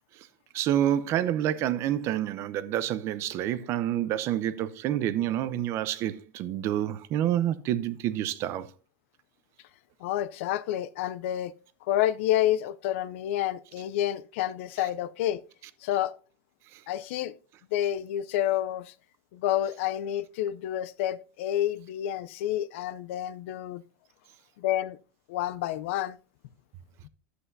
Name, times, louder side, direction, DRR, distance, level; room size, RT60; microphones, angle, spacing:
voice 1, 0.5-8.7, right 11 dB, 40° right, 0.6 m, -28 dB
voice 2, 10.0-11.5 11.8-15.4 15.8-16.1 16.9-17.3 17.7-18.9 19.3-23.8 24.6-25.0 25.3-26.2, left 12 dB, 70° left, 0.4 m, -29 dB
11.0 x 7.9 x 2.6 m
supercardioid pair, 150°, 7 cm